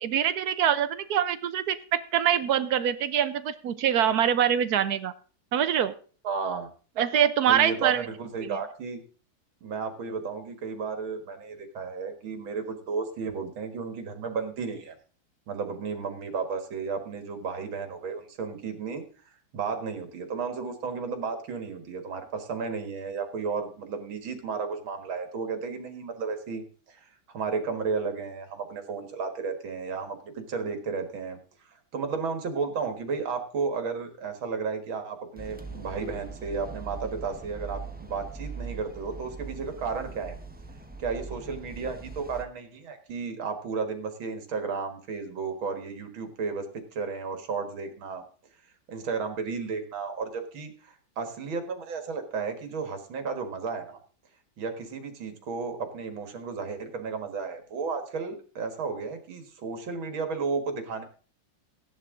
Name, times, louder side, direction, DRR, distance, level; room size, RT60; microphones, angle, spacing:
voice 1, 0.0-5.1 5.5-5.9 7.0-8.1 8.4-8.6, right 9 dB, 65° right, 12 dB, 1.1 m, -24 dB
voice 2, 6.2-6.7 7.5-9.0 9.6-14.9 15.5-19.0 19.5-31.4 31.6-40.4 41.0-48.2 48.9-54.0 54.6-61.0, right 5 dB, 80° right, 7 dB, 2.4 m, -33 dB
sound 1, 35.4-42.4, right 4 dB, 10° right, 0.5 m, -41 dB
15.5 x 10.5 x 3.7 m, 0.40 s
omnidirectional pair, 2.2 m